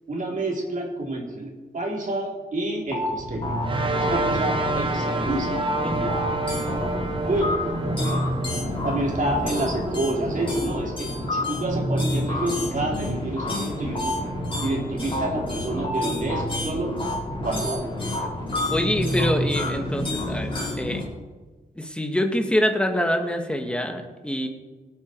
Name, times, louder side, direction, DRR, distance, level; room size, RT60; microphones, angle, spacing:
voice 1, 0.1-3.5 3.9-5.7 7.2-7.5 8.0-8.2 8.8-14.1 14.6-16.9 17.4-17.9, right 1 dB, 50° right, -1 dB, 3.9 m, -28 dB
sound 1, 2.9-21.0, left 1 dB, 30° left, 5.0 m, -28 dB
sound 2, 3.6-16.4, right 3 dB, 30° right, 1.4 m, -32 dB
voice 2, 5.8-6.1 18.7-21.0 21.8-24.5, equal, 5° left, 4 dB, 1.9 m, -25 dB
24.5 x 9.4 x 4.7 m, 1.3 s
wide cardioid pair, 125°, 17 cm